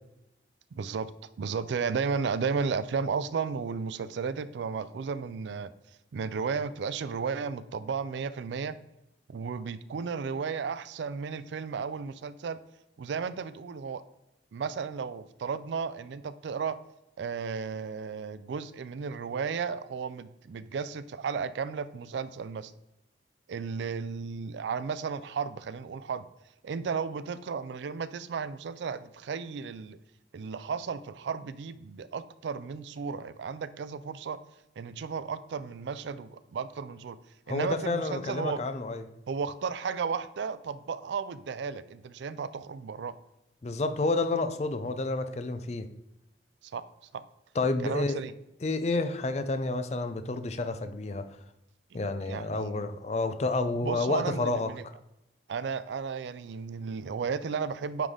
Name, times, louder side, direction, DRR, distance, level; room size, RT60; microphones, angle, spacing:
voice 1, 0.7-1.1 1.4-5.7 6.1-8.8 9.3-12.6 13.0-14.0 14.5-16.8 17.2-22.7 23.5-26.3 26.6-30.0 30.3-34.4 34.8-37.2 37.5-38.6 39.3-43.1 46.7-46.8 47.1-47.2 47.8-48.3 52.3-52.8 53.8-54.8 55.5-58.1, right 5 dB, 75° right, 14 dB, 0.4 m, -34 dB
voice 2, 37.5-39.0 43.6-45.9 47.6-48.2 48.6-51.3 51.9-54.7, left 3 dB, 35° left, 10 dB, 0.4 m, -30 dB
9.1 x 3.4 x 3.7 m, 0.89 s
head